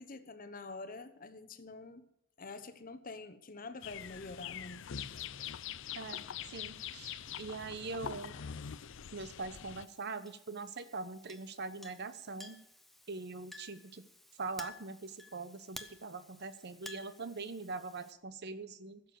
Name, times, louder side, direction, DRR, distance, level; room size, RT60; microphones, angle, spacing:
voice 1, 0.0-2.1 2.4-5.1, left 3 dB, 45° left, 1.0 m, -47 dB
sound 1, 3.8-9.8, left 8 dB, 65° left, 0.5 m, -44 dB
voice 2, 5.9-8.4 9.1-12.6 13.1-14.0 14.4-19.0, right 3 dB, 55° right, 0.9 m, -42 dB
Chink clink, 9.8-18.1, left 1 dB, ahead, 0.8 m, -54 dB
15.0 x 7.0 x 7.8 m
head